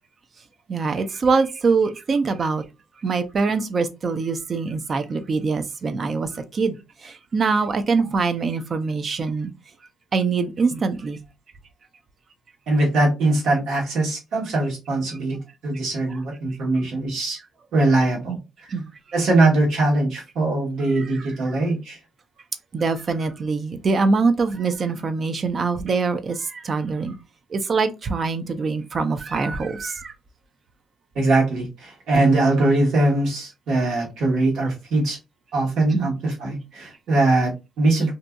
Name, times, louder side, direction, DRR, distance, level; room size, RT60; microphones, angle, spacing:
voice 1, 0.7-2.6 3.0-6.8 7.0-9.5 10.1-11.2 18.3-18.4 18.7-18.9 21.0-21.1 22.7-27.1 27.5-30.1 35.9-36.1, right 4 dB, 45° right, 0.4 m, -23 dB
voice 2, 12.7-15.4 15.6-17.4 17.7-18.4 19.1-22.0 31.1-35.2 35.5-38.1, right 2 dB, 80° right, 1.4 m, -21 dB
2.6 x 2.6 x 2.2 m
cardioid pair, 90°, 0 cm